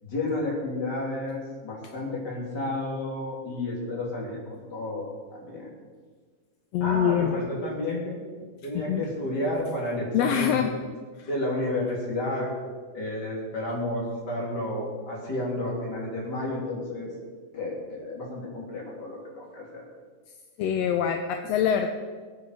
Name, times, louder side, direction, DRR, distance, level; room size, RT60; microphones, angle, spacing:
voice 1, 0.0-5.7 6.8-8.2 8.6-10.7 11.3-12.7 12.9-17.1 17.5-19.8, left 1 dB, 35° left, -3 dB, 4.0 m, -31 dB
voice 2, 6.7-7.4 8.7-9.1 10.1-10.7 11.2-11.3 20.6-21.9, left 9 dB, 75° left, 5 dB, 1.8 m, -24 dB
21.5 x 8.9 x 5.0 m, 1.5 s
omnidirectional pair, 3.3 m